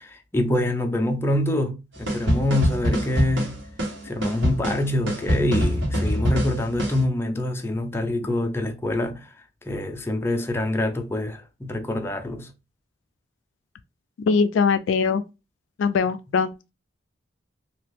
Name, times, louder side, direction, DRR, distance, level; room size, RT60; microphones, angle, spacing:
voice 1, 0.0-3.6 4.0-9.2 9.7-12.5, left 1 dB, 15° left, 0.4 m, -25 dB
sound 1, 2.1-7.0, equal, 80° right, 1.3 m, -24 dB
voice 2, 14.2-15.2 15.8-16.5, left 5 dB, 80° left, 0.3 m, -21 dB
2.8 x 2.4 x 3.4 m
head